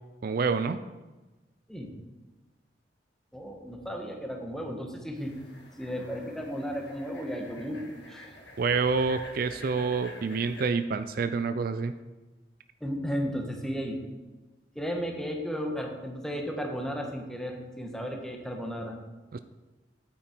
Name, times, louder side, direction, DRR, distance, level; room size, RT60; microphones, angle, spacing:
voice 1, 0.2-0.8 8.6-12.0 19.3-19.4, right 4 dB, 55° right, 11 dB, 0.4 m, -27 dB
voice 2, 3.3-5.3 5.8-8.3 12.8-14.0 14.7-19.0, equal, 5° left, 1 dB, 1.3 m, -34 dB
sound 1, 5.1-10.7, left 1 dB, 70° left, 1.9 m, -48 dB
9.1 x 8.7 x 4.5 m, 1.2 s
head